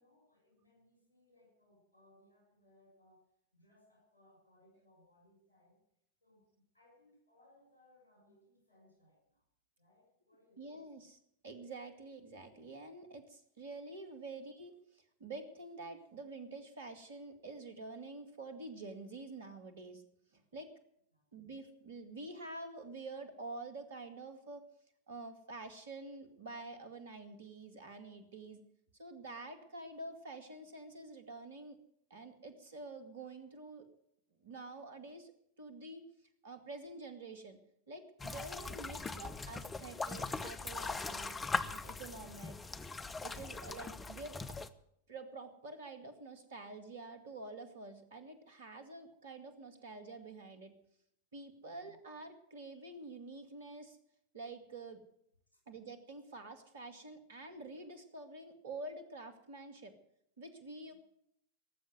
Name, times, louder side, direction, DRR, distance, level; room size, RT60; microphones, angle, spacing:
voice 1, 0.0-5.8 6.2-9.4 9.8-10.8 21.1-21.2 51.6-52.0 55.5-55.6 60.9-61.0, left 1 dB, 80° left, 1 dB, 7.0 m, -68 dB
voice 2, 10.6-20.0 20.3-20.7 21.3-24.6 25.1-28.6 29.0-31.8 32.1-33.9 34.4-35.3 35.6-36.0 36.4-37.6 37.9-41.4 41.6-42.6 43.2-44.6 45.1-50.7 51.3-54.0 54.3-55.0 55.7-59.9 60.4-60.9, right 2 dB, 60° right, 8 dB, 2.2 m, -48 dB
sound 1, 38.2-44.7, left 3 dB, 15° left, 0.8 m, -40 dB
18.5 x 7.6 x 9.4 m, 0.74 s
figure-of-eight pair, 90°, 0 cm